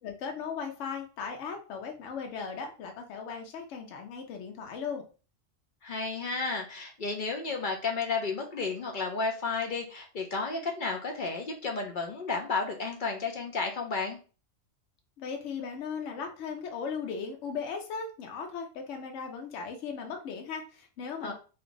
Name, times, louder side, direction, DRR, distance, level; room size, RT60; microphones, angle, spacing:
voice 1, 0.0-5.0 15.2-21.3, left 6 dB, 70° left, 3 dB, 0.9 m, -37 dB
voice 2, 5.8-14.2 21.2-21.3, left 4 dB, 55° left, 2 dB, 0.6 m, -32 dB
2.6 x 2.3 x 3.7 m, 0.36 s
omnidirectional pair, 1.3 m